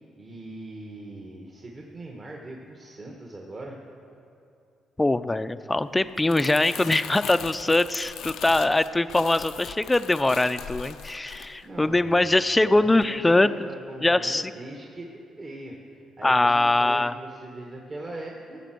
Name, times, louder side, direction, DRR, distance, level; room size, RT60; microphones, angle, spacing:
voice 1, 0.2-3.8 11.6-18.6, right 2 dB, 40° right, -1 dB, 1.4 m, -41 dB
voice 2, 5.0-13.5 14.0-14.5 16.2-17.1, left 2 dB, 15° left, 13 dB, 0.4 m, -22 dB
Crumpling crinkling, 6.0-12.4 12.7-13.0, left 9 dB, 80° left, 0.5 m, -40 dB
16.5 x 6.7 x 7.7 m, 2.6 s
cardioid pair, 90°, 0 cm